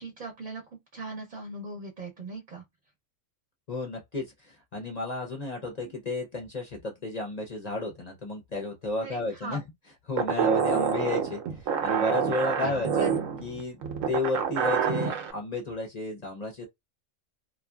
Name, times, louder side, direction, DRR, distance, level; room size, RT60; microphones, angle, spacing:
voice 1, 0.0-2.6 5.8-5.9 9.0-9.6 10.6-10.9 12.6-13.2, right 2 dB, 45° right, 0.7 m, -39 dB
voice 2, 3.7-9.6 10.1-16.7, left 3 dB, 45° left, 0.6 m, -33 dB
sound 1, 10.2-15.3, right 7 dB, 85° right, 1.0 m, -27 dB
2.6 x 2.4 x 2.3 m
omnidirectional pair, 1.4 m